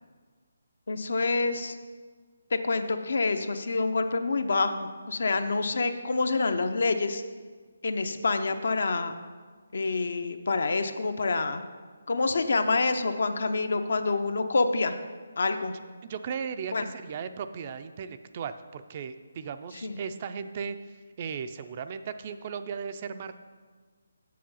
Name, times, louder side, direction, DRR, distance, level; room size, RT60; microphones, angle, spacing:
voice 1, 0.9-1.8 2.5-7.2 7.8-9.1 9.7-11.6 12.1-15.0 15.4-15.7 16.7-16.9 19.8-20.0, left 3 dB, 65° left, 8 dB, 0.7 m, -27 dB
voice 2, 16.0-23.4, right 6 dB, 35° right, 10 dB, 0.4 m, -37 dB
7.6 x 6.9 x 5.5 m, 1.5 s
figure-of-eight pair, 155°, 0 cm